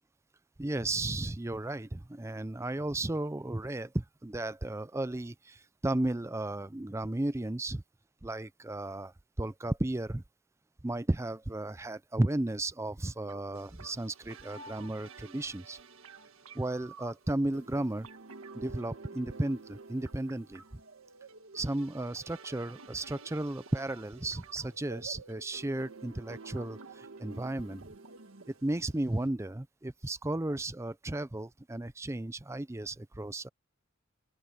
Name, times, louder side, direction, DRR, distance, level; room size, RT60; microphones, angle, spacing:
voice 1, 0.6-7.8 8.2-9.1 9.4-10.2 10.8-15.8 16.5-18.1 18.5-20.6 21.5-27.8 28.6-33.5, right 1 dB, 15° right, 0.5 m, -34 dB
sound 1, 13.3-29.3, right 4 dB, 80° right, 1.5 m, -51 dB
open air
head